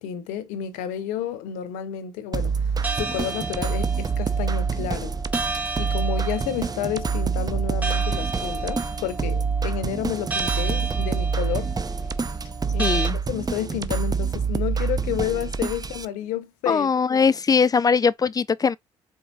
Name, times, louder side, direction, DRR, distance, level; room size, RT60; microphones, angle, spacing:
voice 1, 0.0-2.5 2.9-5.1 5.8-11.7 12.7-13.0 13.3-16.9, left 9 dB, 80° left, 0.7 m, -30 dB
sound 1, 2.3-16.1, right 5 dB, 30° right, 0.6 m, -26 dB
sound 2, 2.8-13.1, right 3 dB, 10° right, 1.4 m, -33 dB
voice 2, 12.8-13.2 16.7-18.8, left 5 dB, 30° left, 0.4 m, -20 dB
4.6 x 3.5 x 2.6 m
hypercardioid pair, 45°, 13 cm